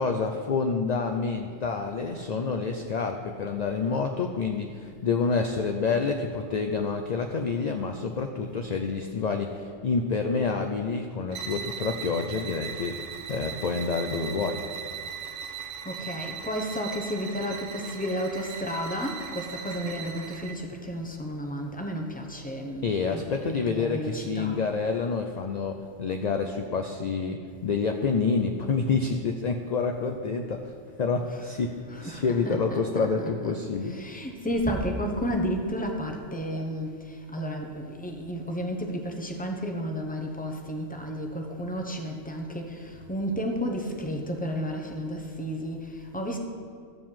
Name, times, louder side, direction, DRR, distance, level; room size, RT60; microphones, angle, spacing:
voice 1, 0.0-14.6 22.8-30.7 31.0-31.7 32.0-33.9, left 4 dB, 55° left, 4 dB, 0.5 m, -28 dB
sound 1, 11.3-20.6, right 7 dB, 85° right, 1.2 m, -39 dB
voice 2, 15.5-24.6 31.3-31.4 31.9-46.4, equal, 10° left, 2 dB, 0.8 m, -32 dB
12.5 x 4.7 x 7.4 m, 2.1 s
omnidirectional pair, 1.3 m